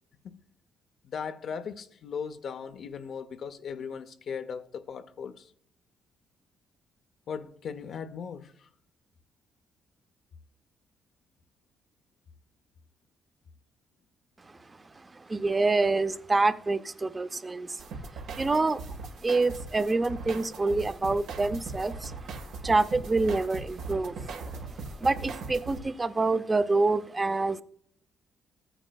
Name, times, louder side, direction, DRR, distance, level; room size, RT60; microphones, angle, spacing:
voice 1, 1.1-5.5 7.3-8.5, left 6 dB, 65° left, 0.6 m, -38 dB
voice 2, 15.2-17.8 18.4-18.8 19.2-22.1 22.6-27.6, right 3 dB, 25° right, 0.6 m, -27 dB
sound 1, 17.8-25.8, right 3 dB, 85° right, 1.4 m, -40 dB
15.0 x 9.0 x 2.3 m
cardioid pair, 90°, 0 cm